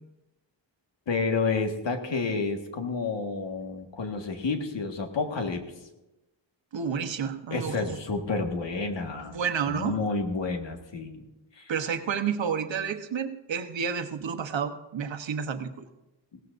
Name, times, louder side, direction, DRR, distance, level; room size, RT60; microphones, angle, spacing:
voice 1, 1.1-5.6 7.5-9.4 9.7-11.3 11.6-11.7 16.3-16.4, left 4 dB, 75° left, 4 dB, 1.7 m, -30 dB
voice 2, 6.7-8.0 9.3-10.0 11.7-15.7, right 7 dB, 80° right, 6 dB, 1.1 m, -30 dB
21.5 x 17.0 x 2.6 m, 1.0 s
wide cardioid pair, 130°, 44 cm